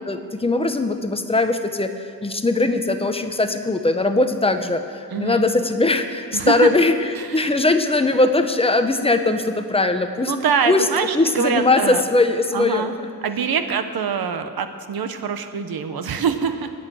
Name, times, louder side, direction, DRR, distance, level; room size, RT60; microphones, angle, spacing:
voice 1, 0.1-10.3 10.6-10.9 11.1-12.9, left 2 dB, 15° left, 8 dB, 0.7 m, -20 dB
voice 2, 5.1-5.5 6.3-6.7 7.2-7.5 10.2-12.0 12.5-12.9 13.2-16.7, right 6 dB, 75° right, 9 dB, 1.0 m, -24 dB
21.0 x 8.7 x 6.2 m, 2.3 s
wide cardioid pair, 175°, 37 cm